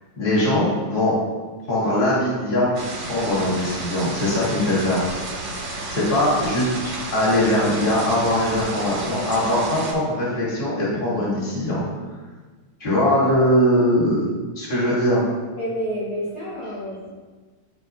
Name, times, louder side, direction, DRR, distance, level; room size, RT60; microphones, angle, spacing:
voice 1, 0.1-1.1 1.7-2.7 3.0-5.0 5.9-11.8 12.8-14.3 14.6-15.2, left 1 dB, 20° left, -8 dB, 1.9 m, -21 dB
sound 1, 2.7-9.9, right 2 dB, 55° right, 2.7 m, -32 dB
voice 2, 15.6-17.1, equal, 55° left, -10 dB, 1.8 m, -29 dB
11.0 x 4.4 x 2.4 m, 1.3 s
omnidirectional pair, 3.5 m